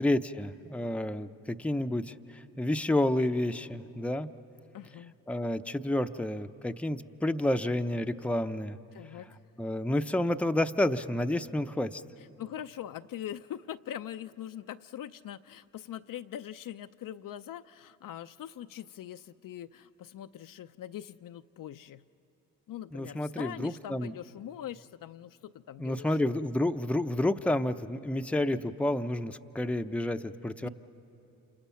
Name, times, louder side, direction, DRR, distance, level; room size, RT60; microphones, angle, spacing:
voice 1, 0.0-2.1 2.6-4.3 5.3-8.8 9.6-12.0 22.9-24.1 25.8-30.7, left 1 dB, 5° left, 8 dB, 0.7 m, -30 dB
voice 2, 4.7-5.1 8.9-9.3 12.2-22.0 22.7-26.3 30.6-30.7, left 11 dB, 55° left, 10 dB, 0.6 m, -42 dB
28.0 x 27.5 x 5.8 m, 2.9 s
supercardioid pair, 60°, 39 cm